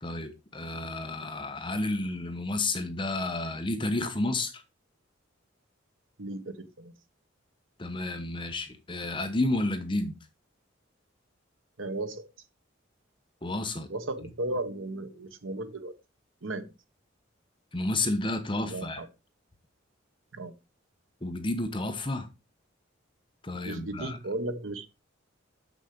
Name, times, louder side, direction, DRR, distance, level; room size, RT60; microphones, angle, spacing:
voice 1, 0.0-4.6 7.8-10.2 13.4-13.9 17.7-19.0 21.2-22.3 23.4-24.2, left 2 dB, 25° left, 0.9 m, -31 dB
voice 2, 6.2-6.9 11.8-12.3 13.9-15.9 16.4-16.7 18.6-19.1 20.3-20.5 23.6-25.0, right 2 dB, 85° right, 1.2 m, -35 dB
7.3 x 6.1 x 5.1 m
head